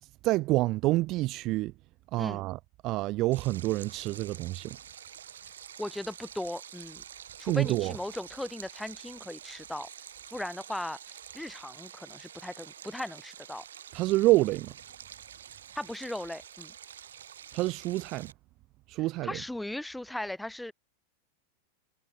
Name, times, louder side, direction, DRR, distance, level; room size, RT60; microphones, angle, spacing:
voice 1, 0.2-1.7 2.1-4.8 7.5-7.9 13.9-14.7 17.5-18.3 18.9-19.4, right 19 dB, 40° right, 0.9 m, -27 dB
Stream, 3.3-18.3, right 9 dB, 65° right, 2.4 m, -48 dB
voice 2, 5.8-7.0 7.4-9.9 10.3-13.6 15.8-16.7 19.2-20.7, left 1 dB, 5° left, 2.2 m, -38 dB
figure-of-eight pair, 90°, 0 cm